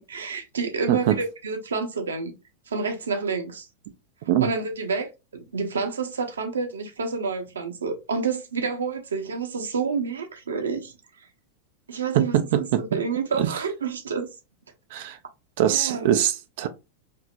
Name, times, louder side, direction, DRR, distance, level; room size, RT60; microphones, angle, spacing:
voice 1, 0.0-2.3 2.7-3.7 4.4-10.9 11.9-14.3 15.7-16.1, right 5 dB, 70° right, 0.9 m, -29 dB
voice 2, 12.1-12.8 13.4-13.5 14.9-15.2 15.6-16.7, right 11 dB, 50° right, 0.4 m, -22 dB
4.7 x 2.9 x 2.4 m
figure-of-eight pair, 90°, 0 cm